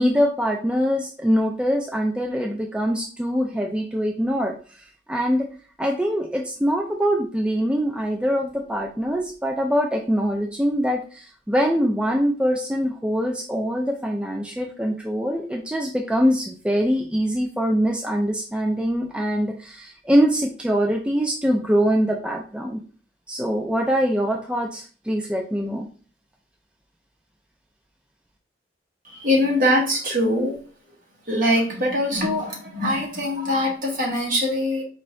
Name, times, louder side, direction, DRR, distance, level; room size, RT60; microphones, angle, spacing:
voice 1, 0.0-4.8 5.1-5.5 5.8-22.8 23.3-25.9, equal, 5° right, 1 dB, 0.3 m, -23 dB
voice 2, 29.0-30.6 31.3-34.8, left 1 dB, 50° right, -2 dB, 1.4 m, -22 dB
4.6 x 2.6 x 3.1 m, 0.41 s
head